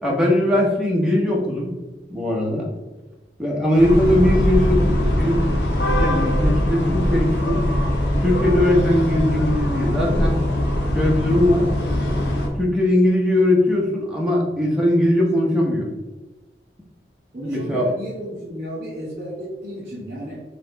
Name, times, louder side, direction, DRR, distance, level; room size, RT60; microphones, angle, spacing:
voice 1, 0.0-1.8 2.1-2.7 3.4-5.5 6.0-7.6 8.2-10.4 10.9-11.7 12.5-15.9 17.5-17.9, left 1 dB, 5° right, -3 dB, 0.8 m, -20 dB
sound 1, 3.8-12.5, left 1 dB, 80° left, 0.9 m, -21 dB
voice 2, 17.3-20.4, equal, 50° right, -8 dB, 1.6 m, -33 dB
4.1 x 3.2 x 3.9 m, 1.1 s
head